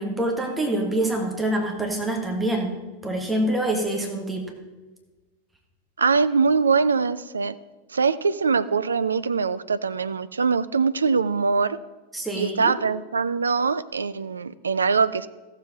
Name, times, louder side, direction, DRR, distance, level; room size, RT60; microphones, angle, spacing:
voice 1, 0.0-2.8 3.0-4.5 12.1-12.7, right 1 dB, 5° right, 1 dB, 1.5 m, -26 dB
voice 2, 6.0-7.6 7.9-11.8 12.4-15.3, right 5 dB, 75° right, 15 dB, 0.3 m, -22 dB
15.0 x 7.3 x 3.8 m, 1.2 s
figure-of-eight pair, 90°, 0 cm